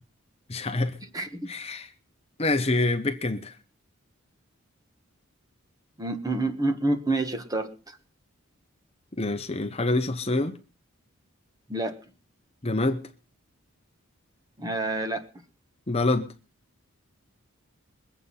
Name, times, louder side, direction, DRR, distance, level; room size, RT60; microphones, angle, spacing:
voice 1, 0.5-0.9 1.5-1.9 2.4-3.5 9.2-10.6 12.6-13.0 15.9-16.3, left 2 dB, 30° left, 0.9 m, -26 dB
voice 2, 1.0-1.5 6.0-8.0 11.7-12.0 14.6-15.3, right 2 dB, 15° right, 1.3 m, -28 dB
22.5 x 8.1 x 5.6 m
head